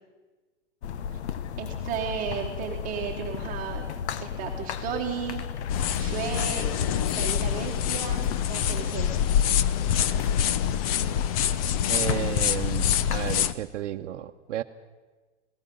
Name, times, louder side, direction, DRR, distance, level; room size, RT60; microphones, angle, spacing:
sound 1, 0.8-13.6, left 8 dB, 65° left, 1.0 m, -35 dB
voice 1, 1.6-3.8 4.1-5.4 5.9-6.7 7.1-9.2, right 8 dB, 25° right, 0 dB, 1.5 m, -34 dB
sound 2, 5.7-13.5, left 9 dB, 30° left, 0.5 m, -26 dB
voice 2, 11.9-14.6, right 12 dB, 75° right, 3 dB, 0.9 m, -32 dB
26.5 x 18.0 x 5.4 m, 1.3 s
hypercardioid pair, 155°, 36 cm